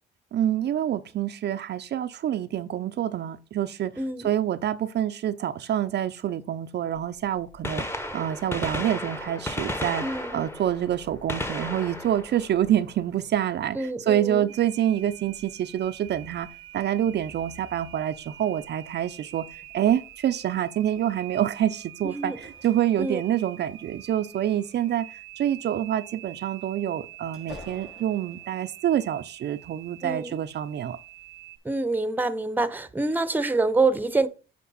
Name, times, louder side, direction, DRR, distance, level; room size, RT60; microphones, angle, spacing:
voice 1, 0.3-3.9 4.2-31.0, right 11 dB, 60° right, 0.6 m, -27 dB
voice 2, 4.0-4.3 10.0-10.4 13.7-14.5 22.0-22.4 23.0-23.2 30.0-30.4 31.6-34.3, right 3 dB, 10° right, 0.8 m, -26 dB
Gunshot gunfire, 7.5-13.4 15.3-15.4 16.4-16.5 18.1-18.2 19.6-19.7 19.9-20.0, left 1 dB, 10° left, 1.1 m, -34 dB
sound 1, 14.5-31.6, right 14 dB, 90° right, 0.9 m, -46 dB
sound 2, 16.0-16.4 17.0-18.3 19.3-19.5 21.9-23.6 24.4-25.4 26.1-29.7 30.1-31.4 31.9-32.0, left 2 dB, 60° left, 3.6 m, -50 dB
8.5 x 4.5 x 4.1 m
cardioid pair, 90°, 20 cm